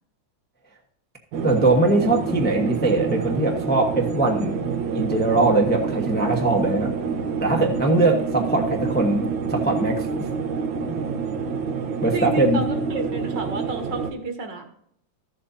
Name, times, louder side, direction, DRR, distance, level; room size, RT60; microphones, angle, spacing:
sound 1, 1.3-14.1, right 5 dB, 90° right, 1.7 m, -27 dB
voice 1, 1.4-4.6 4.9-6.9 7.4-9.2 9.5-10.3 12.0-12.6, right 2 dB, 10° left, 1 dB, 0.6 m, -21 dB
voice 2, 12.1-14.7, right 4 dB, 65° right, 5 dB, 1.9 m, -30 dB
14.0 x 7.4 x 2.7 m, 0.69 s
omnidirectional pair, 2.1 m